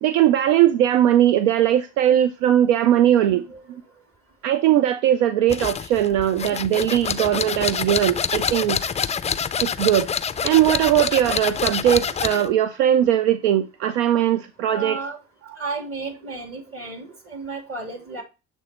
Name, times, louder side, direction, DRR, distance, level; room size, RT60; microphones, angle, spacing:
voice 1, 0.0-3.4 4.4-8.8 9.6-10.1 10.4-15.0, right 11 dB, 80° right, 0.5 m, -19 dB
voice 2, 3.3-3.6 14.7-15.2 15.6-18.2, right 3 dB, 40° right, 2.6 m, -33 dB
sound 1, 5.5-12.5, left 7 dB, 20° left, 0.4 m, -26 dB
7.4 x 3.3 x 4.2 m
hypercardioid pair, 65°, 36 cm